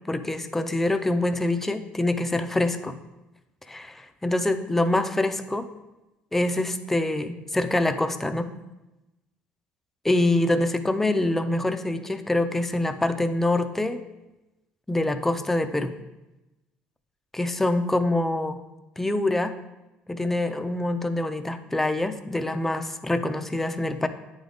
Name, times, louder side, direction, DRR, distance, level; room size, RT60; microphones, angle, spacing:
voice 1, 0.1-3.0 3.7-5.7 6.3-8.5 10.0-14.0 14.9-15.9 17.3-18.6 19.0-19.6 20.1-24.1, left 2 dB, 10° left, 9 dB, 0.4 m, -25 dB
9.1 x 3.8 x 3.4 m, 1.0 s
cardioid pair, 130°, 3 cm